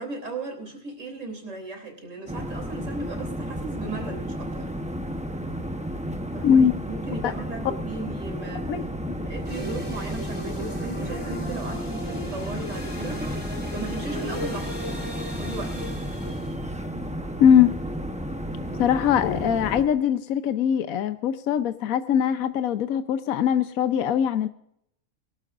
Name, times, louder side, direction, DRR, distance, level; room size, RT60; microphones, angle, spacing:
voice 1, 0.0-4.7 6.3-8.7 9.3-14.7 15.3-15.8 18.6-18.8, right 3 dB, 60° right, 4 dB, 3.9 m, -37 dB
sound 1, 2.3-19.8, equal, 5° right, 0.6 m, -32 dB
voice 2, 8.7-9.3 17.4-17.7 18.8-24.5, left 8 dB, 80° left, 10 dB, 1.1 m, -21 dB
sound 2, 9.4-16.6, left 1 dB, 20° left, 3.0 m, -38 dB
23.5 x 12.0 x 2.5 m, 0.73 s
omnidirectional pair, 1.5 m